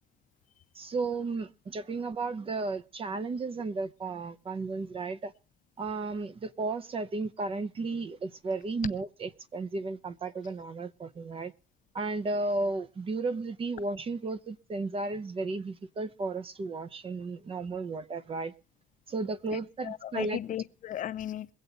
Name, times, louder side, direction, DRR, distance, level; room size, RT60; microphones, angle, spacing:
voice 1, 0.7-5.3 5.8-11.5 11.9-18.5 19.1-20.4, right 3 dB, 35° right, 0.8 m, -34 dB
voice 2, 19.5-21.5, left 11 dB, 50° left, 0.7 m, -36 dB
23.0 x 8.1 x 4.0 m
cardioid pair, 110°, 17 cm